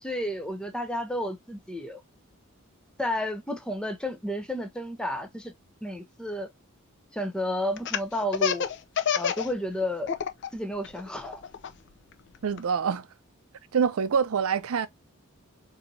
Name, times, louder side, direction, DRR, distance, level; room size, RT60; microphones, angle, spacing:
voice 1, 0.0-2.0 3.0-5.5 5.8-6.5 7.1-8.7 9.2-10.1 10.5-11.4, left 1 dB, 5° left, 0.5 m, -31 dB
Laughter, 7.8-9.5 9.8-10.5 10.8-12.6, left 7 dB, 55° left, 0.5 m, -27 dB
voice 2, 12.4-13.1 13.7-14.9, right 6 dB, 70° right, 0.4 m, -25 dB
4.1 x 2.7 x 2.6 m
head